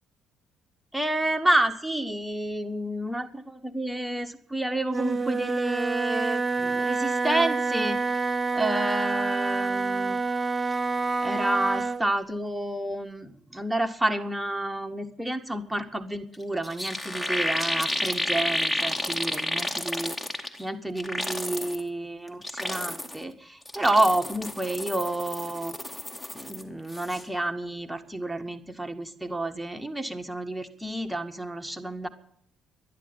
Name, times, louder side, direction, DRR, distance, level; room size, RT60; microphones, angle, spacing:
voice 1, 0.9-8.0 8.5-10.2 10.7-10.8 11.2-20.1 20.6-25.7 26.3-32.1, right 1 dB, 10° right, 6 dB, 1.8 m, -29 dB
Wind instrument woodwind instrument, 4.9-12.1, right 3 dB, 25° right, 0.6 m, -27 dB
sound 1, 16.3-16.4 16.6-20.6 21.0-21.8 22.3-23.2 23.6-26.6 26.9-27.2, left 1 dB, 10° left, 2.2 m, -31 dB
11.5 x 11.0 x 9.2 m, 0.66 s
figure-of-eight pair, 45°, 0 cm